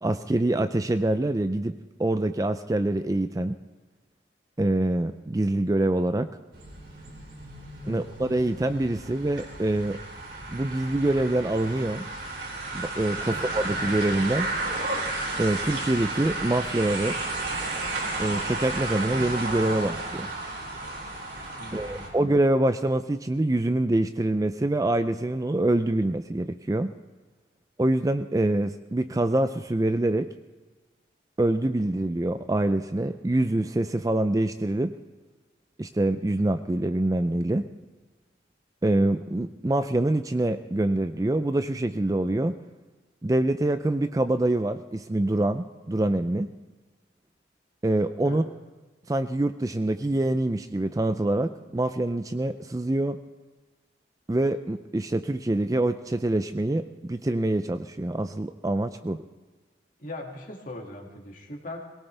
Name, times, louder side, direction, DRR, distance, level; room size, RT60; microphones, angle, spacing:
voice 1, 0.0-3.6 4.6-6.3 7.9-10.0 10.5-12.1 12.7-14.5 15.4-17.2 18.2-20.3 21.7-26.9 27.8-30.3 31.4-34.9 35.8-37.7 38.8-42.6 43.2-46.5 47.8-48.4 49.1-53.2 54.3-59.2, right 1 dB, 20° right, 10 dB, 0.4 m, -25 dB
sound 1, 6.5-22.1, right 2 dB, 70° right, 4.0 m, -33 dB
voice 2, 21.6-22.2 48.2-48.4 59.0-59.1 60.0-61.8, left 1 dB, 45° left, 1 dB, 2.3 m, -40 dB
22.0 x 18.0 x 3.4 m, 1.2 s
head